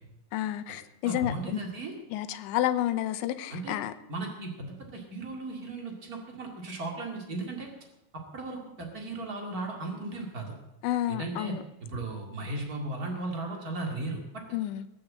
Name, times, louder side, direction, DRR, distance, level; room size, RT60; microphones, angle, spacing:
voice 1, 0.3-1.6 2.1-3.9 10.8-11.6 14.5-14.8, left 13 dB, 80° left, 2.9 m, -30 dB
voice 2, 1.0-1.9 3.5-3.7 4.1-7.7 8.1-10.5 11.1-11.5 11.8-14.2, right 2 dB, 85° right, 0.8 m, -36 dB
21.0 x 7.9 x 7.6 m
omnidirectional pair, 5.7 m